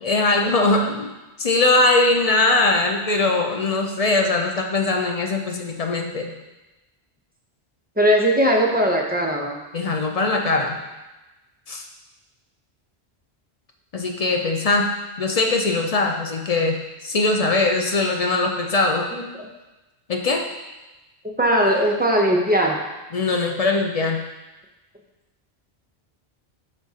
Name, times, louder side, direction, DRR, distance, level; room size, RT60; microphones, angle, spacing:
voice 1, 0.0-1.1 1.4-6.3 9.7-10.8 11.7-11.8 13.9-14.9 15.2-16.8 17.0-19.1 20.1-20.5 23.1-24.2, left 3 dB, 45° left, 2 dB, 0.5 m, -21 dB
voice 2, 8.0-9.6 19.1-19.2 21.4-22.8, equal, 10° right, 0 dB, 0.6 m, -19 dB
10.5 x 3.6 x 2.8 m, 1.1 s
omnidirectional pair, 1.1 m